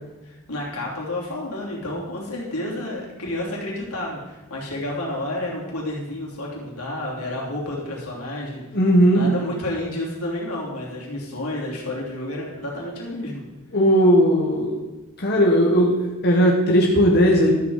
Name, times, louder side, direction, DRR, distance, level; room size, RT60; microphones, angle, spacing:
voice 1, 0.2-8.8 9.1-13.4, left 1 dB, 90° left, -3 dB, 3.0 m, -30 dB
voice 2, 8.7-9.2 13.7-14.8 15.2-16.0 16.2-17.5, equal, 45° left, -2 dB, 1.3 m, -17 dB
12.5 x 7.2 x 4.9 m, 1.1 s
head